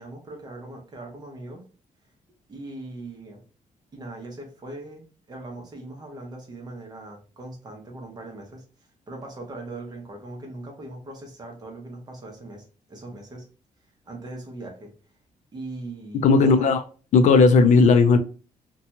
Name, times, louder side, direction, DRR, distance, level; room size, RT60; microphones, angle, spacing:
voice 1, 0.0-1.7 2.5-3.4 3.9-8.6 9.1-13.5 14.1-14.9 15.5-16.8, right 2 dB, 30° right, 0.8 m, -39 dB
voice 2, 16.2-16.8 17.1-18.2, left 4 dB, 60° left, 0.4 m, -15 dB
2.7 x 2.2 x 2.7 m
cardioid pair, 150°, 14 cm